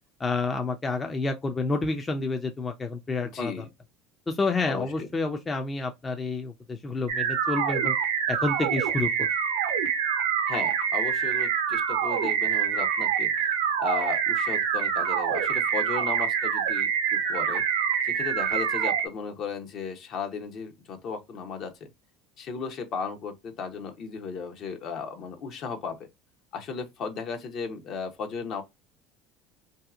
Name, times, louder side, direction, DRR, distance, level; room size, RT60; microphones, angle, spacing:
voice 1, 0.2-3.6 4.3-8.0 8.3-9.3, left 3 dB, 25° left, 0.4 m, -29 dB
voice 2, 3.2-3.7 4.6-5.1 10.5-13.5 13.8-17.6 18.0-21.9 22.4-26.1 26.5-28.6, left 5 dB, 55° left, 0.8 m, -35 dB
sound 1, 7.1-19.1, right 8 dB, 85° right, 0.6 m, -26 dB
2.7 x 2.3 x 2.3 m
hypercardioid pair, 85°, 0 cm